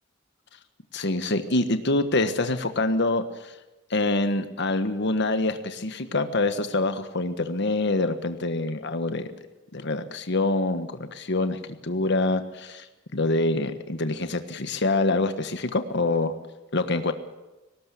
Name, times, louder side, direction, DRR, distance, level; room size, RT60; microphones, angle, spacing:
voice 1, 0.9-3.5 3.9-9.3 9.7-12.9 13.1-16.3 16.7-17.1, left 2 dB, 60° left, 9 dB, 1.4 m, -25 dB
18.5 x 18.0 x 8.4 m, 1.0 s
head